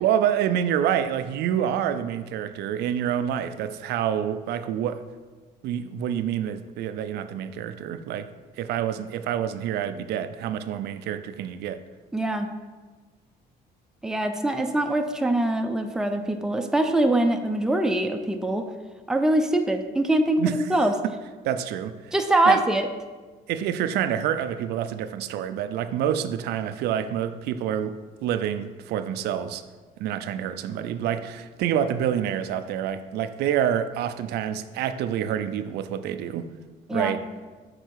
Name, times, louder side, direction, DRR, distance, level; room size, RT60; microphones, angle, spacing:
voice 1, 0.0-5.0 5.6-8.3 8.6-11.8 20.4-20.7 21.0-21.1 21.4-22.1 22.5-22.6 23.5-29.6 30.0-36.5 36.9-37.2, right 9 dB, 75° right, 10 dB, 0.4 m, -27 dB
voice 2, 12.1-12.5 14.0-18.7 19.1-20.9 22.1-22.9 36.9-37.2, right 1 dB, 5° right, 5 dB, 0.5 m, -23 dB
6.7 x 4.0 x 4.6 m, 1.3 s
cardioid pair, 110°, 17 cm